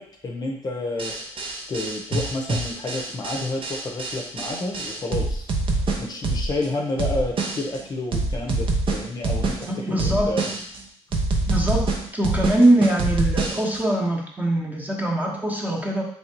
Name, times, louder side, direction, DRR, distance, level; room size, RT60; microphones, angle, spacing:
voice 1, 0.0-10.5, left 2 dB, 35° left, 0 dB, 0.7 m, -30 dB
sound 1, 1.0-6.7 7.0-7.8 8.1-9.7 10.0-10.8 11.1-13.8, right 3 dB, 50° right, 0.7 m, -25 dB
voice 2, 9.7-10.3 11.5-11.8 12.1-16.0, right 1 dB, 15° right, -1 dB, 1.0 m, -22 dB
3.4 x 2.7 x 4.4 m, 0.67 s
cardioid pair, 85°, 11 cm